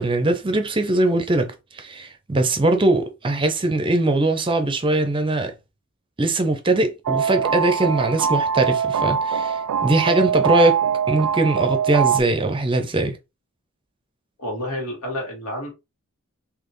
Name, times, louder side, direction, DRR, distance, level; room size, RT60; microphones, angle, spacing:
voice 1, 0.0-5.5 6.2-10.8 11.1-13.2, right 2 dB, 20° right, 0.5 m, -21 dB
sound 1, 7.0-12.2, right 7 dB, 90° right, 0.3 m, -22 dB
voice 2, 14.4-15.7, left 1 dB, 90° left, 2.1 m, -29 dB
4.2 x 2.9 x 3.1 m
head